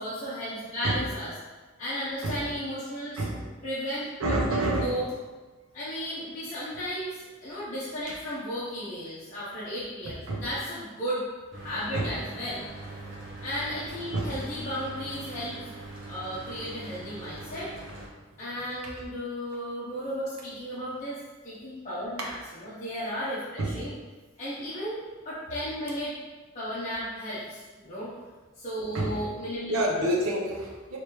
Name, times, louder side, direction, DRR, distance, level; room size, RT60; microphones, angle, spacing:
voice 1, 0.0-1.3 1.8-3.2 3.6-4.4 4.8-5.1 5.7-11.2 11.5-12.6 13.4-15.7 16.1-17.7 18.4-21.2 21.4-23.9 24.4-25.0 25.2-26.1 26.5-28.1 28.6-30.0, equal, 35° left, -11 dB, 0.8 m, -34 dB
voice 2, 4.2-5.1 8.1-8.2 10.0-10.5 11.9-12.2 14.1-14.4 18.8-18.9 22.2-22.3 23.6-23.8 28.9-29.2 29.7-31.0, right 1 dB, 90° right, -2 dB, 0.7 m, -29 dB
Mechanical fan, 11.5-18.1, right 2 dB, 60° right, 0.9 m, -42 dB
3.2 x 3.2 x 3.0 m, 1.3 s
head